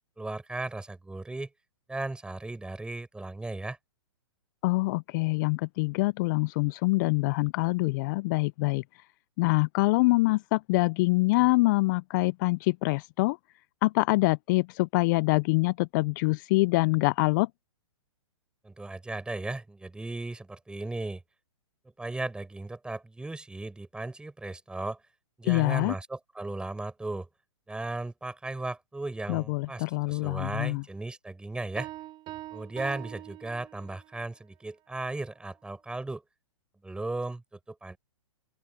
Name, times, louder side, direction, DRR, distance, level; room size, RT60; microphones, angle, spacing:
voice 1, 0.2-1.5 1.9-3.8 18.6-21.2 22.0-25.0 25.4-27.3 27.7-31.9 32.5-36.2 36.8-38.0, right 2 dB, 5° right, 5.1 m, -36 dB
voice 2, 4.6-8.8 9.4-13.4 13.8-17.5 25.4-25.9 29.3-30.8, left 23 dB, 35° left, 0.5 m, -25 dB
Piano, 31.8-34.1, right 15 dB, 25° right, 4.8 m, -43 dB
open air
hypercardioid pair, 125°, 17 cm